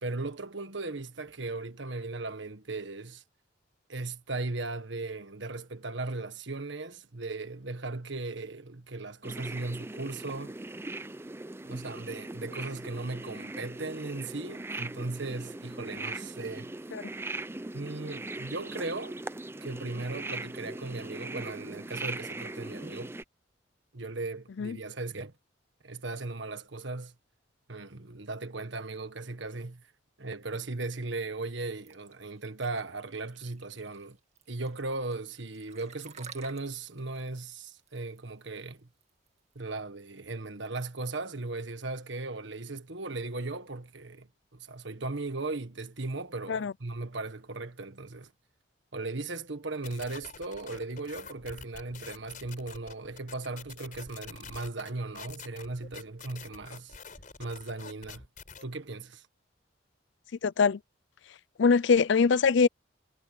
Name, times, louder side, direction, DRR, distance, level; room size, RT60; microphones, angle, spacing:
voice 1, 0.0-3.2 3.9-10.5 11.6-16.7 17.7-19.2 19.6-23.2 23.9-25.3 25.8-27.1 27.7-29.9 30.2-34.2 34.5-38.9 39.5-48.3 48.9-57.0 57.4-58.2 58.6-59.3, right 3 dB, 65° right, 1.6 m, -37 dB
sound 1, 9.2-23.2, right 2 dB, 15° right, 0.5 m, -40 dB
sound 2, 31.9-39.5, right 7 dB, 35° right, 2.1 m, -52 dB
sound 3, 49.8-58.6, left 5 dB, 45° left, 5.3 m, -47 dB
voice 2, 60.4-60.8 61.6-62.7, left 5 dB, 65° left, 0.5 m, -23 dB
head